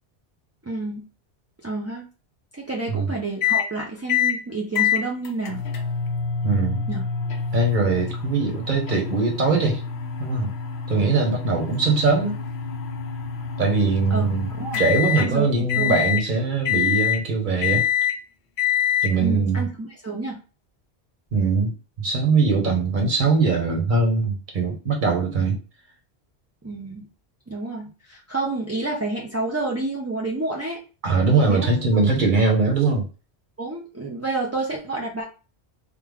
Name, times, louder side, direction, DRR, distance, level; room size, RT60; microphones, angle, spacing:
voice 1, 0.6-1.0 1.6-2.0 2.5-5.6 6.9-7.1 14.1-14.3 14.6-14.8 15.2-16.0 19.2-20.4 26.6-27.1 27.5-30.8 31.5-31.7 33.6-35.2, right 2 dB, 25° right, -3 dB, 0.3 m, -29 dB
sound 1, 3.4-3.7 4.1-4.4 4.8-15.3 15.7-16.3 16.7-17.2 17.6-18.2 18.6-19.1, left 8 dB, 75° left, 0.9 m, -26 dB
voice 2, 6.4-6.8 7.5-9.8 10.2-10.5 10.9-12.4 13.6-14.5 14.8-17.8 19.0-19.7 21.3-21.7 22.0-25.6 31.0-33.1, right 4 dB, 50° right, 1 dB, 1.1 m, -21 dB
3.5 x 2.2 x 3.4 m, 0.34 s
omnidirectional pair, 1.1 m